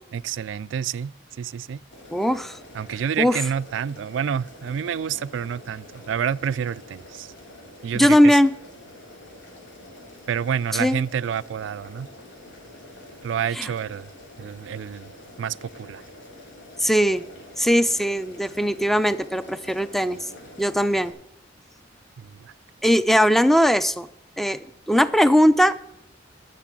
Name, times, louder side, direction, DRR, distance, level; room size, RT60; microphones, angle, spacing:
voice 1, 0.1-1.1 1.4-1.8 2.7-7.3 7.8-8.4 10.3-12.1 13.2-14.1 14.4-15.1 15.4-16.0 22.2-22.5, right 8 dB, 85° right, 0.3 m, -28 dB
Boiling, 1.9-21.1, left 1 dB, 85° left, 3.5 m, -46 dB
voice 2, 2.1-2.6 3.2-3.4 7.9-8.5 10.7-11.0 13.5-13.7 16.8-17.2 17.6-20.2 20.6-21.1 22.8-24.1 24.4-25.8, equal, ahead, 0.4 m, -19 dB
11.5 x 6.8 x 7.5 m
head